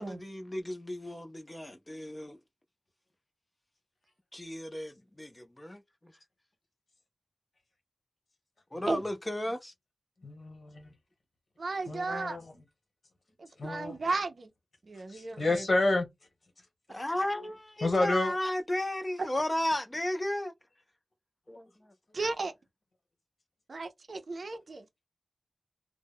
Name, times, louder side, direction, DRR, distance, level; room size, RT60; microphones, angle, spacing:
voice 1, 0.0-2.4 4.3-6.1 8.7-9.7 16.9-20.5 21.5-21.9, left 1 dB, 20° left, 0.4 m, -34 dB
voice 2, 10.2-10.9 11.9-12.4 13.6-14.0 15.1-16.1 17.8-18.3, left 2 dB, 65° left, 1.1 m, -29 dB
voice 3, 11.6-12.4 13.4-14.5 14.9-15.6 22.1-22.5 23.7-24.8, right 3 dB, 60° right, 0.4 m, -34 dB
2.1 x 2.0 x 3.4 m
wide cardioid pair, 95°, 0 cm